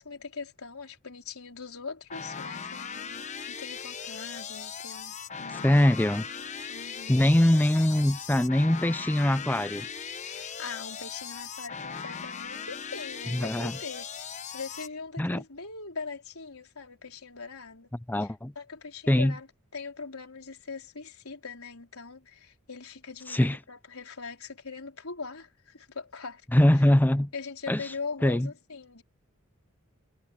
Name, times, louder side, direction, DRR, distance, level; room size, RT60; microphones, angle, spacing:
voice 1, 0.0-5.7 6.7-7.3 10.2-17.9 18.6-19.5 19.7-26.4 27.3-29.0, left 4 dB, 85° left, 4.1 m, -41 dB
sound 1, 2.1-14.9, left 6 dB, 35° left, 0.9 m, -39 dB
voice 2, 5.5-6.3 7.1-9.9 13.3-13.7 15.2-15.4 18.1-18.5 19.1-19.3 23.3-23.6 26.5-27.3 27.7-27.9 28.2-28.5, left 1 dB, 10° left, 0.4 m, -23 dB
head